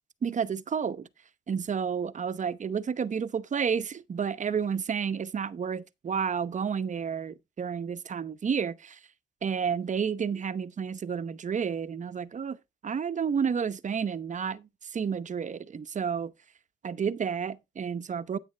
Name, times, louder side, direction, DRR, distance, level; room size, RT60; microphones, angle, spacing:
voice 1, 0.2-1.1 1.5-9.0 9.4-12.6 12.8-16.3 16.8-18.4, right 6 dB, 40° right, 0.8 m, -31 dB
9.4 x 9.2 x 3.3 m
cardioid pair, 90°, 20 cm